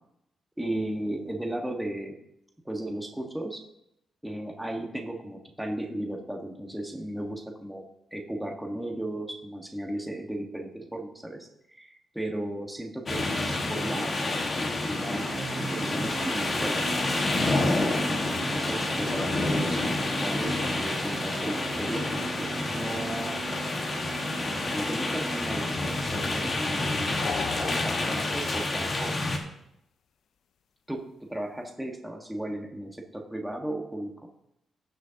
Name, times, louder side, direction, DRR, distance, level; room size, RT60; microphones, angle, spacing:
voice 1, 0.6-2.2 2.6-3.6 4.2-7.8 8.1-11.5 11.8-15.2 15.7-17.0 17.6-23.3 24.7-29.1 30.9-31.0 31.3-34.3, right 1 dB, 5° right, 1 dB, 1.5 m, -35 dB
sound 1, 13.1-29.4, left 2 dB, 35° left, 1.6 m, -29 dB
sound 2, 15.1-28.1, right 4 dB, 35° right, 0.8 m, -39 dB
sound 3, 27.2-28.7, left 8 dB, 70° left, 0.4 m, -37 dB
18.5 x 6.3 x 2.9 m, 0.79 s
wide cardioid pair, 135°, 0 cm